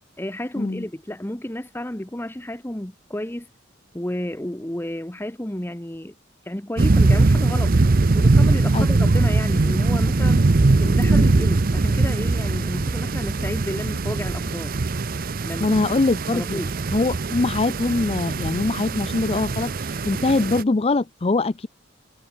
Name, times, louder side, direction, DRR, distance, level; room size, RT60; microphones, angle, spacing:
voice 1, 0.2-3.5 3.9-6.1 6.5-7.8 8.1-10.4 10.8-14.7 15.4-15.9 16.3-16.8, left 1 dB, 10° left, 1.0 m, -31 dB
sound 1, 6.8-20.6, right 3 dB, 45° right, 0.7 m, -21 dB
voice 2, 15.6-16.6 16.9-21.7, left 3 dB, 30° left, 0.5 m, -23 dB
head